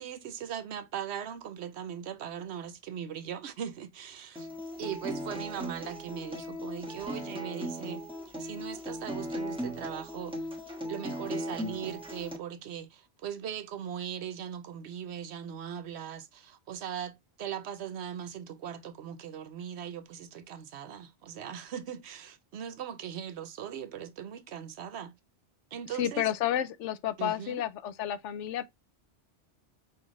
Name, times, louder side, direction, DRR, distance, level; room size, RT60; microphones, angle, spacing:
voice 1, 0.0-4.5 4.8-10.5 10.9-25.1 25.7-26.3 27.2-27.6, right 9 dB, 70° right, 0.9 m, -39 dB
Acoustic guitar, 4.4-12.4, equal, 5° right, 1.1 m, -38 dB
voice 2, 26.0-28.7, left 11 dB, 80° left, 0.9 m, -31 dB
5.7 x 2.6 x 3.0 m
omnidirectional pair, 1.2 m